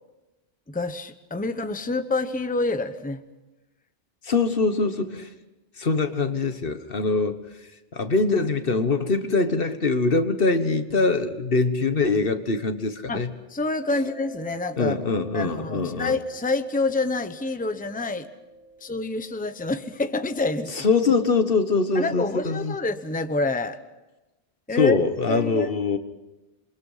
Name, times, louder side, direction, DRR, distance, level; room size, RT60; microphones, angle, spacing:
voice 1, 0.7-3.2 13.1-13.2 13.5-15.0 15.3-18.3 18.8-20.9 21.9-23.8 24.7-25.0 25.3-25.7, left 3 dB, 10° left, 9 dB, 0.9 m, -27 dB
voice 2, 4.2-5.3 5.8-7.4 7.9-13.3 14.8-16.2 20.7-22.7 24.7-26.0, left 4 dB, 65° left, 9 dB, 1.5 m, -23 dB
Mallet percussion, 13.9-20.3, right 2 dB, 85° left, 3.7 m, -45 dB
27.5 x 23.0 x 5.7 m, 1.0 s
omnidirectional pair, 1.0 m